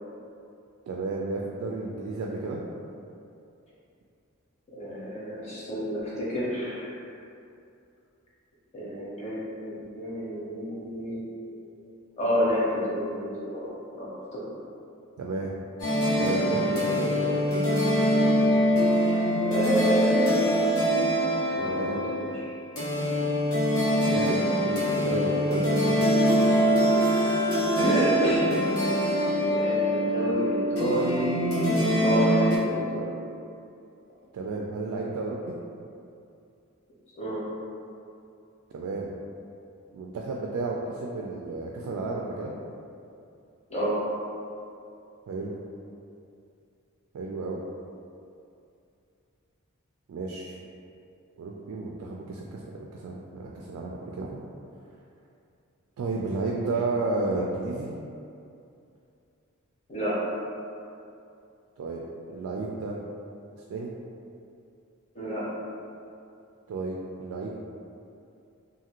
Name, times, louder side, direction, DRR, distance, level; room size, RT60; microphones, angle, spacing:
voice 1, 0.9-2.6 15.2-15.5 16.2-17.4 21.6-22.0 24.0-26.0 34.3-35.6 38.7-39.1 39.9-42.5 45.3-45.5 47.1-47.6 50.1-50.6 51.4-54.4 56.0-57.9 61.8-62.0 62.3-63.0 63.7-63.9 66.7-67.5, right 3 dB, 85° right, -1 dB, 0.3 m, -32 dB
voice 2, 4.7-6.9 8.7-11.6 12.2-14.4 19.4-20.4 21.5-22.0 27.0-27.4 27.8-28.5 29.4-31.7 32.0-33.0 37.2-37.4 43.7-44.0 59.9-60.2 65.1-65.4, equal, 30° left, -8 dB, 0.8 m, -29 dB
sound 1, 15.8-32.6, equal, 75° left, 0.9 m, -24 dB
2.7 x 2.4 x 2.9 m, 2.6 s
head